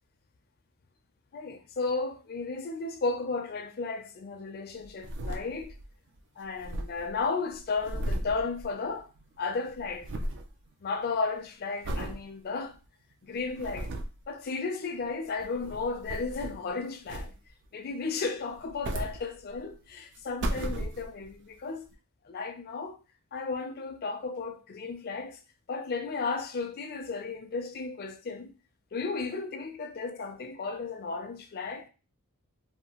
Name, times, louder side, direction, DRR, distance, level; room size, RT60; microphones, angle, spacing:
voice 1, 1.3-5.7 6.4-9.1 9.4-10.1 10.8-12.7 13.2-13.9 14.3-17.3 17.7-21.9 22.2-23.0 23.3-25.4 25.7-28.5 28.9-31.9, left 4 dB, 45° left, 0.4 m, -34 dB
sound 1, 4.8-5.9 6.2-6.3 6.4-9.2 9.5-10.5 11.0-11.3 11.8-12.2 12.7-12.8 13.4-14.2 15.2-16.7 17.1-17.7 18.5-19.7 20.1-21.3 21.9-22.0, right 1 dB, 55° right, 0.4 m, -36 dB
2.7 x 2.3 x 2.8 m
head